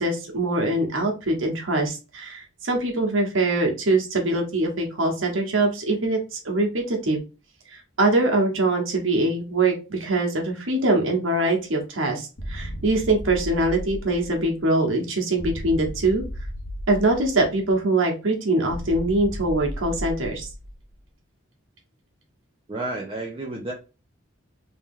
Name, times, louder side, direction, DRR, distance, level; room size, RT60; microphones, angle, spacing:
voice 1, 0.0-7.2 8.0-16.2 16.9-20.5, right 2 dB, 90° right, 1 dB, 1.3 m, -23 dB
sound 1, 12.4-14.7 15.4-17.7 18.7-20.9, equal, 85° left, 1.2 m, -35 dB
voice 2, 22.7-23.7, right 2 dB, 25° right, -1 dB, 0.6 m, -31 dB
3.3 x 2.9 x 3.6 m, 0.31 s
head